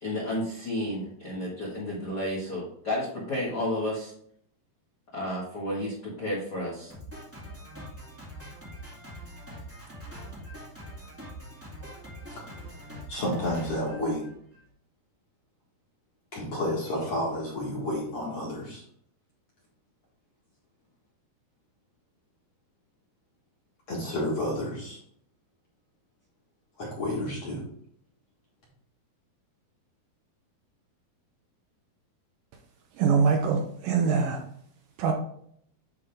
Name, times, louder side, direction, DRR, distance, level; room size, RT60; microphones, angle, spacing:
voice 1, 0.0-4.1 5.1-6.9, left 1 dB, 80° left, -7 dB, 0.9 m, -31 dB
Drum kit, 6.9-14.7, equal, 10° right, 0.7 m, -43 dB
voice 2, 12.3-12.8 13.1-14.2 16.3-18.8 23.9-25.0 26.8-27.6, left 1 dB, 50° left, -4 dB, 2.0 m, -31 dB
voice 3, 33.0-34.4 35.0-35.1, right 5 dB, 75° right, 3 dB, 2.2 m, -23 dB
9.8 x 3.5 x 3.4 m, 0.66 s
omnidirectional pair, 4.6 m